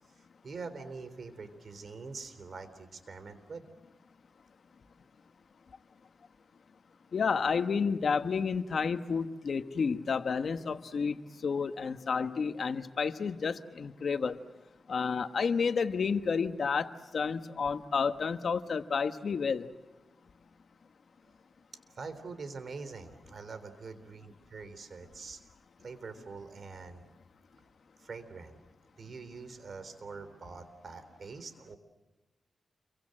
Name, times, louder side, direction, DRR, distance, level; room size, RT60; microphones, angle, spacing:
voice 1, 0.1-3.7 21.9-25.4 25.8-27.1 28.0-28.6 29.0-31.8, right 4 dB, 60° right, 11 dB, 3.7 m, -44 dB
voice 2, 7.1-14.4 14.9-19.7, left 5 dB, 65° left, 9 dB, 1.3 m, -30 dB
29.0 x 24.0 x 7.8 m, 1.2 s
cardioid pair, 85°, 0 cm